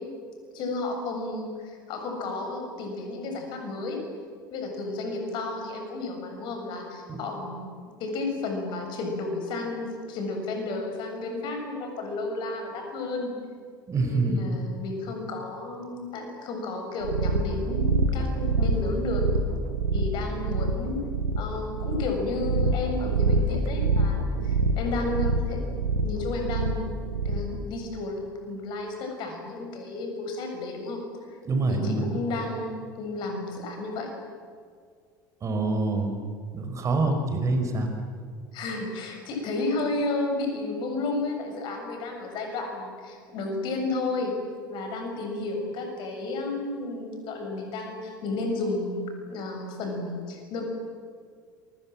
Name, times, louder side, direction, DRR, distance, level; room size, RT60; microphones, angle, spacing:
voice 1, 0.5-4.0 4.5-7.7 8.0-13.3 14.0-19.2 19.9-21.0 21.4-25.6 26.0-31.4 31.7-34.1 38.5-44.3 44.7-50.6, left 2 dB, 45° left, 3 dB, 7.4 m, -32 dB
voice 2, 13.9-14.5 31.5-32.1 35.4-36.2 36.5-37.9, right 2 dB, 30° right, 5 dB, 5.4 m, -26 dB
sound 1, 17.0-27.6, right 3 dB, 75° right, 3.0 m, -26 dB
28.0 x 25.0 x 7.7 m, 2.1 s
figure-of-eight pair, 70°, 11 cm